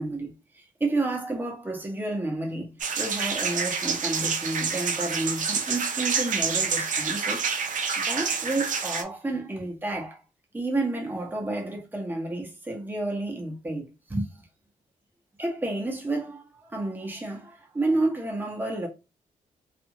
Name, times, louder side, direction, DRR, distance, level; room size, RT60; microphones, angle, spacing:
voice 1, 0.0-7.4 8.0-10.2 10.5-14.5 15.4-18.9, right 2 dB, 15° right, 0.8 m, -30 dB
sound 1, 2.8-9.0, right 5 dB, 65° right, 0.5 m, -28 dB
2.4 x 2.4 x 2.8 m
wide cardioid pair, 130°, 14 cm